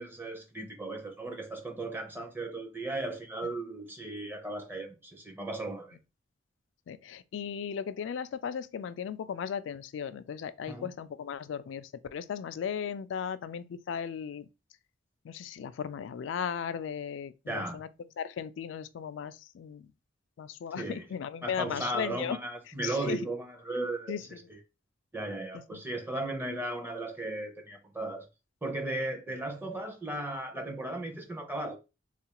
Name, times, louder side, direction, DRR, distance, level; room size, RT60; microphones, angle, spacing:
voice 1, 0.0-6.0 10.7-10.9 17.5-17.8 20.8-21.2 21.4-24.6 25.1-28.3 28.6-31.8, right 2 dB, 10° right, 0.5 m, -36 dB
voice 2, 6.9-14.5 15.2-17.9 18.2-19.9 20.4-22.4 22.8-23.2 24.1-24.2 25.7-25.8, left 7 dB, 70° left, 0.3 m, -36 dB
3.6 x 2.4 x 2.8 m
head